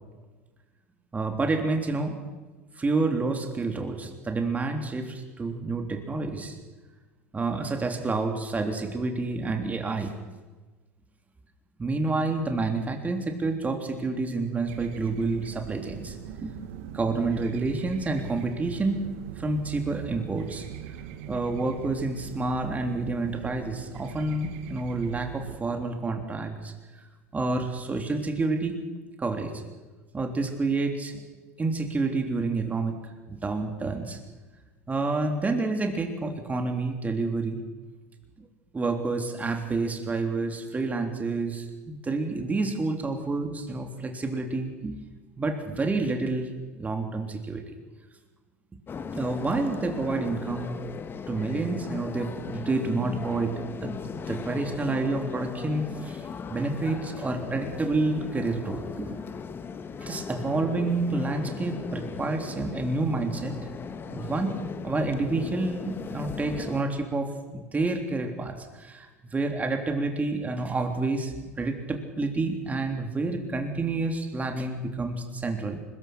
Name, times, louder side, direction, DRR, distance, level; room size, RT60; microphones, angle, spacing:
voice 1, 1.1-2.2 2.8-6.6 7.3-10.1 11.8-16.2 16.4-16.6 16.9-19.1 19.4-20.7 21.3-27.1 27.3-28.8 29.2-29.6 30.1-31.2 31.6-33.0 33.3-34.2 34.9-37.6 38.4-38.5 38.7-45.0 45.4-46.5 46.7-47.6 49.1-50.8 51.3-53.9 54.3-59.3 60.0-63.7 64.0-64.6 64.8-75.8, right 3 dB, 20° right, 4 dB, 3.6 m, -29 dB
sound 1, 14.7-25.6, right 10 dB, 65° right, 1.6 m, -42 dB
sound 2, 48.9-66.8, left 6 dB, 30° left, 1.6 m, -37 dB
25.0 x 21.0 x 6.1 m, 1.3 s
hypercardioid pair, 75°, 7 cm